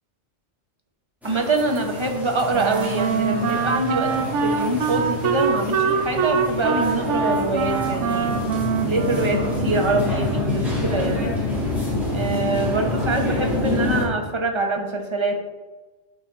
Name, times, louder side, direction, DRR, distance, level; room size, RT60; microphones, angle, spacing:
sound 1, 1.2-14.1, left 2 dB, ahead, 1.5 m, -27 dB
voice 1, 1.2-8.4 8.9-11.4 12.1-15.4, right 2 dB, 30° right, 2 dB, 0.7 m, -24 dB
Wind instrument woodwind instrument, 2.5-9.9, right 6 dB, 80° right, 0.9 m, -24 dB
9.7 x 3.9 x 3.1 m, 1.2 s
omnidirectional pair, 1.2 m